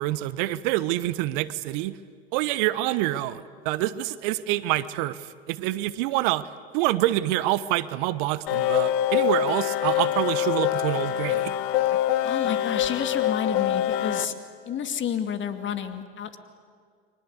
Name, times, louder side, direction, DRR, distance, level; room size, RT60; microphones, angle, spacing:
voice 1, 0.0-1.9 2.3-6.5 6.7-11.5, right 16 dB, 60° right, 17 dB, 1.1 m, -26 dB
sound 1, 8.5-14.3, left 11 dB, 65° left, 1.6 m, -25 dB
voice 2, 12.2-14.3 14.6-16.4, left 8 dB, 40° left, 8 dB, 2.5 m, -30 dB
30.0 x 24.0 x 8.3 m, 2.1 s
hypercardioid pair, 75°, 30 cm